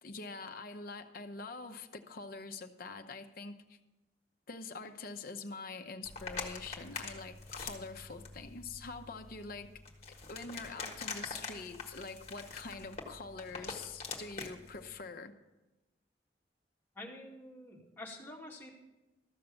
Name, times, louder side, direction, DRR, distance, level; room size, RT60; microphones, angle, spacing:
voice 1, 0.0-3.8 4.5-9.7 10.3-15.3, left 4 dB, 55° left, 7 dB, 0.9 m, -45 dB
sound 1, 6.0-14.9, left 4 dB, 40° left, 1.5 m, -45 dB
voice 2, 16.9-18.9, left 1 dB, 10° left, -3 dB, 2.3 m, -48 dB
13.5 x 6.6 x 7.0 m, 1.1 s
head